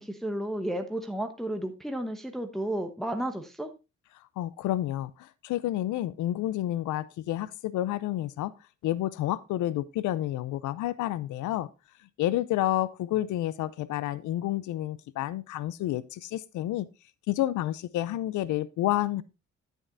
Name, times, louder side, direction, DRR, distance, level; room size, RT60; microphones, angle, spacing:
voice 1, 0.0-3.7, right 1 dB, ahead, 1.0 m, -32 dB
voice 2, 4.4-8.5 8.8-11.7 12.2-16.9 17.3-19.2, left 14 dB, 75° left, 0.5 m, -30 dB
9.5 x 8.9 x 2.6 m
cardioid pair, 90°, 30 cm